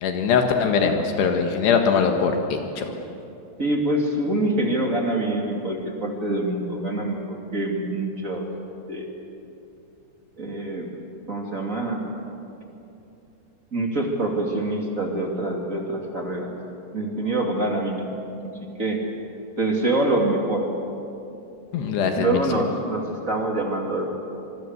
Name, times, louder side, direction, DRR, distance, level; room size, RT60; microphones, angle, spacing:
voice 1, 0.0-2.9 21.7-22.4, left 6 dB, 80° left, 4 dB, 3.8 m, -22 dB
voice 2, 3.6-8.5 8.9-9.1 10.4-10.9 11.3-12.0 13.7-16.5 16.9-18.1 18.8-19.0 19.6-20.7 22.2-24.1, right 2 dB, 25° right, 1 dB, 2.3 m, -25 dB
26.0 x 22.5 x 8.1 m, 2.7 s
omnidirectional pair, 4.8 m